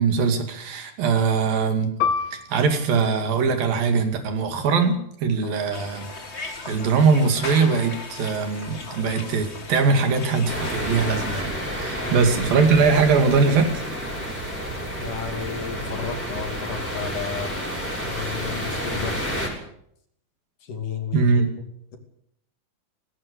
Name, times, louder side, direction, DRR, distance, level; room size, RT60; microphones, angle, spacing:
voice 1, 0.0-1.9 2.3-6.1 6.4-13.7 21.1-21.5, right 5 dB, 75° right, 6 dB, 4.2 m, -21 dB
Piano, 2.0-7.0 7.4-7.5 8.3-8.7, left 6 dB, 80° left, 3.0 m, -32 dB
voice 2, 5.4-5.7 12.0-12.3 15.0-17.5 18.1-19.2 20.6-21.4, left 7 dB, 60° left, 5 dB, 4.1 m, -32 dB
sound 1, 5.7-11.4, left 3 dB, 30° left, 1.4 m, -37 dB
sound 2, 10.5-19.5, equal, 5° left, 6.6 m, -30 dB
17.5 x 17.5 x 8.4 m, 0.71 s
omnidirectional pair, 4.1 m